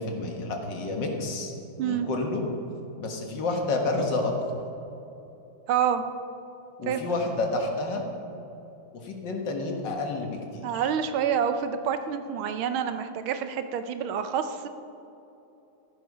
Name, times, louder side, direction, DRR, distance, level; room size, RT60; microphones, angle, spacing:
voice 1, 0.0-1.5 1.8-2.4 3.0-4.3 6.8-8.0 8.9-10.9, left 3 dB, 60° left, 2 dB, 2.0 m, -29 dB
voice 2, 5.7-6.1 6.8-7.0 10.6-14.7, right 8 dB, 75° right, 9 dB, 1.5 m, -27 dB
15.0 x 11.0 x 4.8 m, 2.9 s
omnidirectional pair, 2.3 m